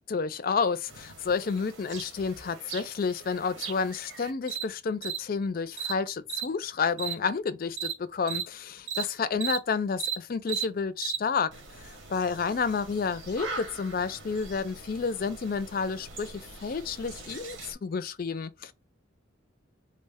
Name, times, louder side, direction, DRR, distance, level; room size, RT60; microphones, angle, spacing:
voice 1, 0.1-11.5 11.8-18.7, left 5 dB, 45° left, 0.4 m, -30 dB
sound 1, 0.9-4.6 5.0-5.2 5.8-5.9 6.3-6.5 7.0-7.1 7.8-7.9 8.3-8.4 8.9-9.0 9.4-9.6 10.0-10.2 10.5-10.6 11.0-11.2 11.5-17.7, right 7 dB, 80° right, 0.9 m, -38 dB
3.8 x 2.1 x 3.4 m
head